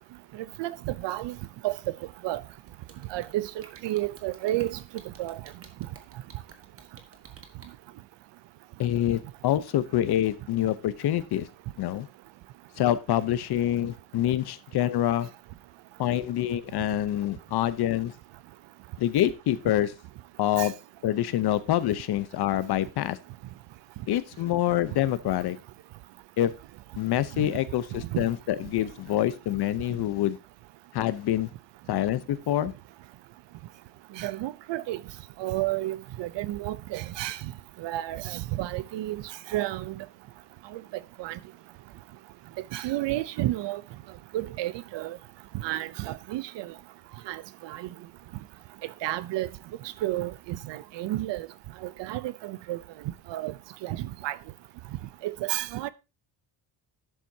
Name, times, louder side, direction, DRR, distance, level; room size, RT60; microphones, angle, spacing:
voice 1, 0.6-1.3 1.6-1.7 2.2-2.4 3.1-3.5 3.8-4.8 5.2-5.4 20.6-20.7 27.4-27.5 28.1-28.2 34.2-35.0 35.4-37.4 37.8-39.2 39.5-39.9 40.7-40.8 41.2-41.4 42.7-43.8 44.3-45.2 45.6-46.7 47.3-47.9 49.0-49.5 50.0-50.3 50.7-51.5 51.8-52.8 53.3-53.5 53.8-54.4 55.2-55.9, right 15 dB, 65° right, 0.7 m, -31 dB
sound 1, 2.7-7.7, right 5 dB, 30° right, 1.4 m, -50 dB
voice 2, 8.8-11.5 11.8-12.1 12.8-15.3 16.0-18.1 19.0-19.9 20.4-20.7 21.0-23.2 24.1-25.6 26.4-26.5 27.0-30.4 30.9-31.5 31.9-32.7, left 12 dB, 55° left, 0.8 m, -26 dB
11.0 x 7.6 x 2.7 m
cardioid pair, 150°, 47 cm